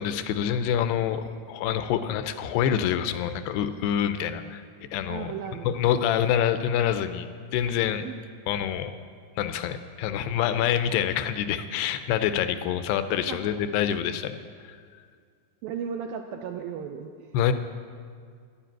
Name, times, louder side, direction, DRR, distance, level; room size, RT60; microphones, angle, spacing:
voice 1, 0.0-4.6 4.9-5.3 5.6-7.3 7.5-8.0 8.5-8.9 9.4-14.3 14.7-14.8 17.3-17.5, left 9 dB, 85° left, 10 dB, 2.6 m, -26 dB
voice 2, 5.1-5.7 8.0-8.2 13.3-13.4 15.6-17.4, right 7 dB, 90° right, 5 dB, 2.1 m, -35 dB
12.0 x 10.0 x 9.1 m, 2.1 s
omnidirectional pair, 4.9 m